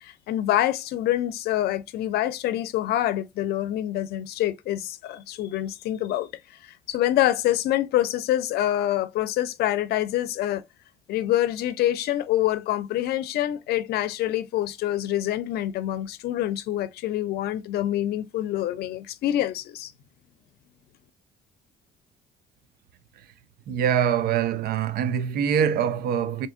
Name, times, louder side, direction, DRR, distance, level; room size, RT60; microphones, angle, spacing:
voice 1, 0.0-6.3 6.6-10.6 11.1-19.9, left 13 dB, 70° left, 0.6 m, -26 dB
voice 2, 23.7-26.5, right 8 dB, 65° right, 0.5 m, -24 dB
3.6 x 2.7 x 2.5 m
cardioid pair, 110°, 17 cm